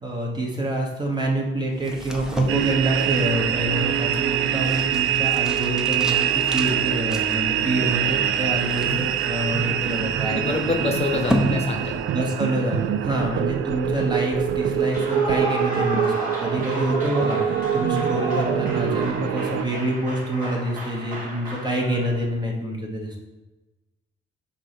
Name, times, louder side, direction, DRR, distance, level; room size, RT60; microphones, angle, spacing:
voice 1, 0.0-10.8 12.1-16.1 16.4-23.2, right 1 dB, 20° right, 0 dB, 1.0 m, -26 dB
sound 1, 1.8-12.3, equal, 5° right, 0.6 m, -33 dB
sound 2, 2.5-19.6, right 10 dB, 90° right, 0.4 m, -25 dB
voice 2, 10.3-11.9, left 3 dB, 30° left, 3 dB, 0.9 m, -26 dB
Clapping / Cheering / Applause, 14.8-22.2, right 2 dB, 45° right, 2.1 m, -32 dB
7.9 x 2.7 x 5.9 m, 1.1 s
wide cardioid pair, 150°, 20 cm